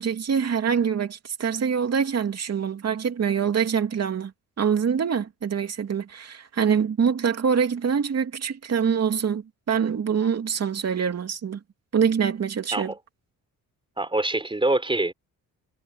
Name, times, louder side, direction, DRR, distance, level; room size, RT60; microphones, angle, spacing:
voice 1, 0.0-4.3 4.6-11.6 11.9-12.9, right 7 dB, 45° right, 2.9 m, -25 dB
voice 2, 14.0-15.1, right 2 dB, 15° right, 4.0 m, -24 dB
cardioid pair, 100°, 37 cm